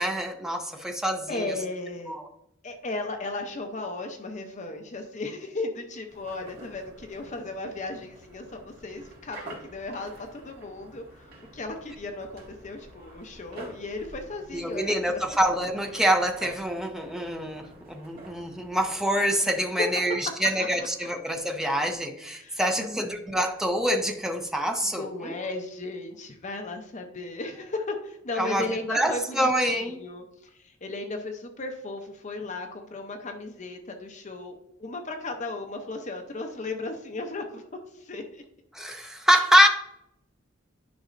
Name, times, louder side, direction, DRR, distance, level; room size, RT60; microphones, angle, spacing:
voice 1, 0.0-1.5 2.1-2.3 14.5-25.3 28.4-30.0 38.7-39.7, equal, 5° right, 4 dB, 0.7 m, -25 dB
voice 2, 1.3-2.2 2.6-15.2 19.8-20.2 20.6-20.9 22.4-23.2 24.8-38.4, left 2 dB, 40° left, 5 dB, 0.7 m, -36 dB
sound 1, 6.1-18.9, right 1 dB, 50° right, 2.1 m, -48 dB
10.5 x 5.3 x 2.6 m, 0.77 s
head